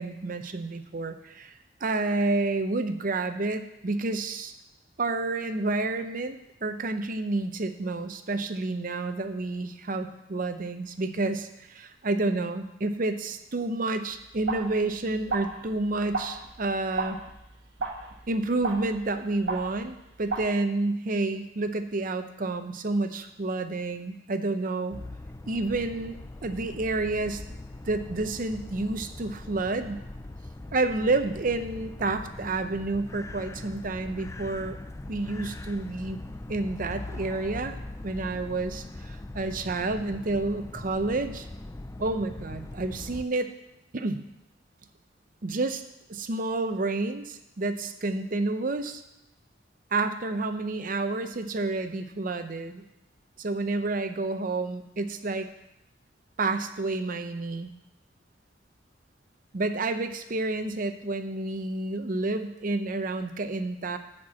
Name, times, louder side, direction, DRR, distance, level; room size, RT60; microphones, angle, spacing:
voice 1, 0.0-1.5 1.8-4.5 5.0-17.2 18.3-25.0 25.5-27.6 27.8-30.0 30.7-34.8 35.1-37.8 38.0-41.5 42.0-43.5 43.9-44.2 45.4-45.8 46.1-49.0 49.9-52.8 53.4-55.5 56.4-57.7 59.5-64.0, right 2 dB, 45° right, 9 dB, 0.6 m, -29 dB
sound 1, 14.1-20.5, right 3 dB, 85° right, 1.3 m, -35 dB
sound 2, 24.9-43.2, left 2 dB, 15° left, 0.3 m, -41 dB
10.5 x 4.5 x 7.5 m, 0.88 s
head